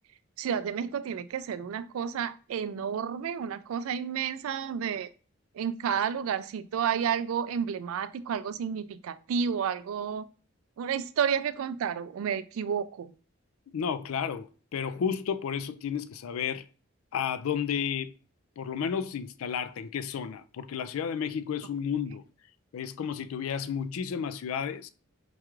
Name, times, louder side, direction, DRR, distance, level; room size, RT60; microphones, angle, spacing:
voice 1, 0.4-5.1 5.6-10.2 10.8-13.1, right 7 dB, 75° right, 0.3 m, -31 dB
voice 2, 13.7-16.7 17.1-18.2 18.6-22.2 22.7-24.9, left 7 dB, 80° left, 0.4 m, -32 dB
4.5 x 2.4 x 3.0 m
head